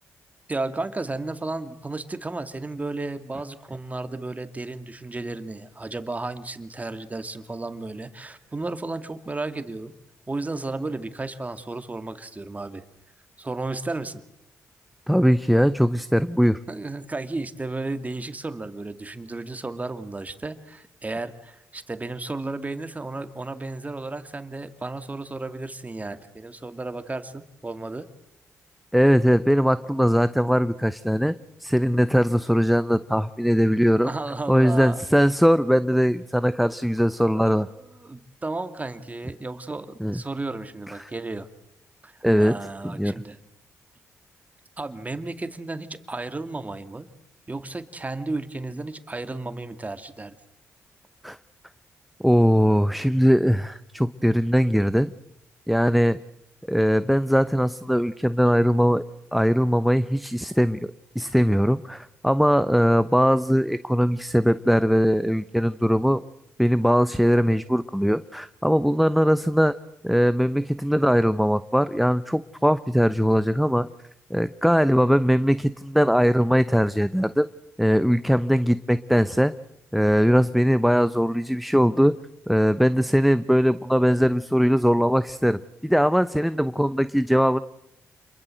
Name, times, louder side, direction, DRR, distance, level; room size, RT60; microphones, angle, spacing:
voice 1, 0.5-9.9 10.3-12.8 13.4-14.2 16.7-28.1 34.0-35.0 37.3-41.5 42.0-43.4 44.8-47.1 47.5-50.3, right 2 dB, 25° right, 9 dB, 2.4 m, -33 dB
voice 2, 15.1-16.6 28.9-31.3 31.6-34.1 34.5-37.7 40.0-40.2 41.0-41.1 42.2-42.6 42.8-43.1 51.2-51.4 52.2-55.1 55.7-56.2 56.7-59.0 59.3-60.9 61.1-66.2 66.6-69.7 70.0-73.9 74.3-77.5 77.8-79.5 79.9-82.1 82.5-87.6, equal, ahead, 13 dB, 0.9 m, -20 dB
28.0 x 22.0 x 7.9 m, 0.83 s
supercardioid pair, 60°, 6 cm